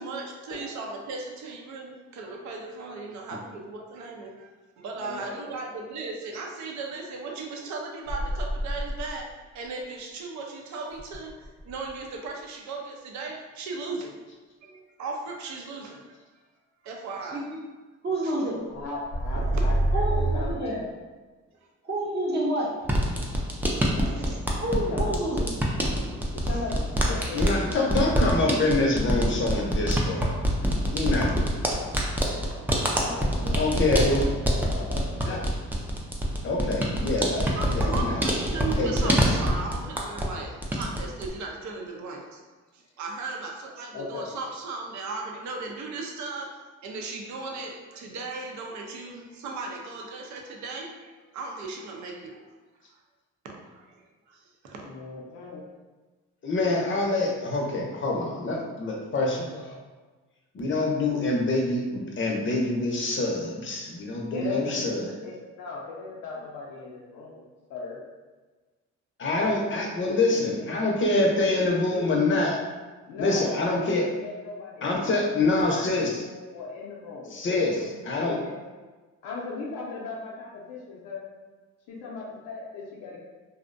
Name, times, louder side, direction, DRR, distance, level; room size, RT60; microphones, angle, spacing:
voice 1, 0.0-4.5 4.8-14.1 14.6-16.2 16.8-17.4 18.2-18.3 19.4-19.7 23.7-24.4 31.5-31.6 37.6-42.4 42.7-46.5 46.8-52.4 53.4-54.9, right 3 dB, 70° right, 1 dB, 0.5 m, -37 dB
voice 2, 5.0-5.6 18.7-20.8 23.9-24.6 24.9-25.1 26.3-28.1 32.9-34.1 34.6-35.4 43.9-44.3 54.8-55.6 64.3-67.4 67.7-68.0 70.0-70.7 71.1-71.3 71.6-72.0 73.1-75.9 76.2-77.9 78.2-78.6 79.2-81.3 81.9-83.2, left 4 dB, 90° left, -4 dB, 0.5 m, -38 dB
sound 1, 8.1-9.3 11.0-11.9 18.8-20.5, right 1 dB, 85° right, 1.0 m, -26 dB
voice 3, 17.2-17.7 18.0-18.7 19.9-20.8 21.8-22.7 24.6-25.5, right 1 dB, 35° right, -4 dB, 0.7 m, -29 dB
sound 2, 22.8-40.4 40.6-41.3, equal, 5° right, 0.3 m, -26 dB
voice 4, 27.1-30.3 30.9-31.5 33.5-34.2 35.2-35.4 36.4-38.2 38.8-39.2 56.4-59.8 60.5-65.1 69.2-72.6 73.2-74.0 74.8-76.2 77.3-78.4, left 2 dB, 40° left, 0 dB, 0.6 m, -26 dB
2.5 x 2.1 x 2.5 m, 1.3 s
cardioid pair, 90°, 30 cm